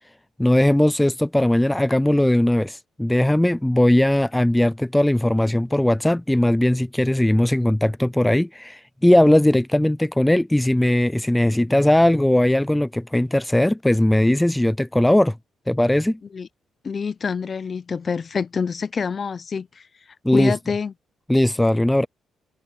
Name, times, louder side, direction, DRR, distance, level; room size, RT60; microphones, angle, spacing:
voice 1, 0.4-15.4 15.7-16.2 20.2-20.5 21.3-22.1, left 1 dB, 5° left, 0.4 m, -19 dB
voice 2, 16.8-19.7 20.3-20.9, left 5 dB, 40° left, 0.8 m, -26 dB
cardioid pair, 90°, 0 cm